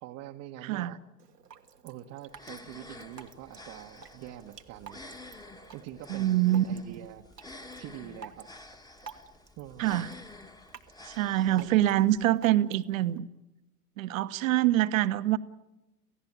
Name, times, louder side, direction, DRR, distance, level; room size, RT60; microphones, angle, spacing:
voice 1, 0.0-1.0 1.8-5.0 5.7-7.3 7.8-8.5 9.6-10.1 11.6-11.7, right 12 dB, 35° right, 2 dB, 1.1 m, -45 dB
voice 2, 0.6-1.0 6.1-6.8 9.8-10.1 11.0-13.3 14.0-15.4, right 14 dB, 55° right, 14 dB, 1.2 m, -25 dB
Drip, 1.2-13.2, right 5 dB, 85° right, 1.6 m, -52 dB
sound 1, 2.3-12.3, left 2 dB, 10° left, 1.5 m, -50 dB
29.0 x 16.0 x 8.7 m, 0.99 s
figure-of-eight pair, 90°, 47 cm